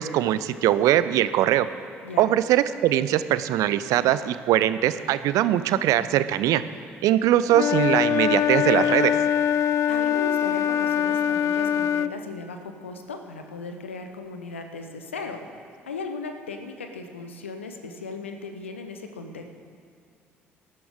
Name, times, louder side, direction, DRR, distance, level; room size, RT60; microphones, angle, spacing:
voice 1, 0.0-1.7 2.2-6.6 7.0-9.1, right 12 dB, 60° right, 14 dB, 0.5 m, -21 dB
Wind instrument woodwind instrument, 7.5-12.2, left 9 dB, 50° left, 0.3 m, -23 dB
voice 2, 9.9-15.4 15.9-19.5, left 3 dB, 85° left, 6 dB, 0.9 m, -36 dB
19.0 x 12.0 x 3.7 m, 2.4 s
figure-of-eight pair, 50°, 6 cm